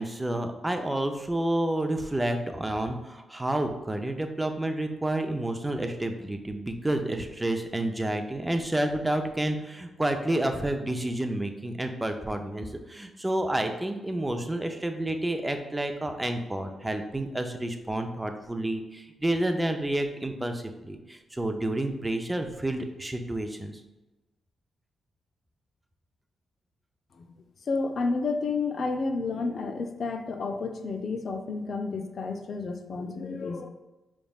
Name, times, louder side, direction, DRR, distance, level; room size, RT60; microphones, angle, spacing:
voice 1, 0.0-23.8, right 1 dB, 15° right, 5 dB, 0.5 m, -30 dB
voice 2, 27.7-33.7, left 4 dB, 60° left, 6 dB, 0.5 m, -31 dB
4.9 x 3.4 x 2.3 m, 1.1 s
cardioid pair, 70°, 0 cm